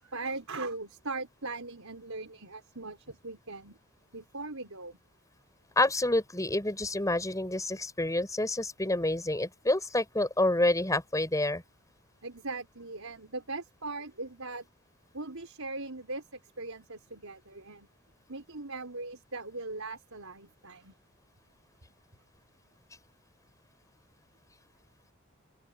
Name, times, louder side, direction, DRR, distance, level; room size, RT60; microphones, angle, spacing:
voice 1, 0.0-3.8 4.1-5.0 12.2-14.7 15.1-17.9 18.3-20.9, right 3 dB, 75° right, 5.0 m, -40 dB
voice 2, 5.8-11.6, left 2 dB, 15° left, 5.9 m, -28 dB
open air
head